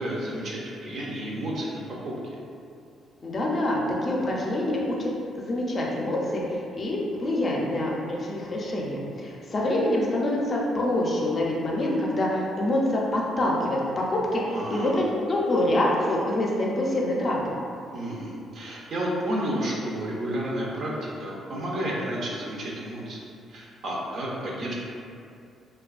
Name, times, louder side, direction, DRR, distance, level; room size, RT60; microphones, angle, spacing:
voice 1, 0.0-2.1 14.5-14.9 17.9-23.2 23.5-24.7, right 1 dB, 60° right, -4 dB, 0.5 m, -31 dB
voice 2, 3.2-5.1 5.3-17.4, left 1 dB, 40° left, -3 dB, 0.4 m, -26 dB
2.4 x 2.2 x 2.3 m, 2.5 s
cardioid pair, 90°, 0 cm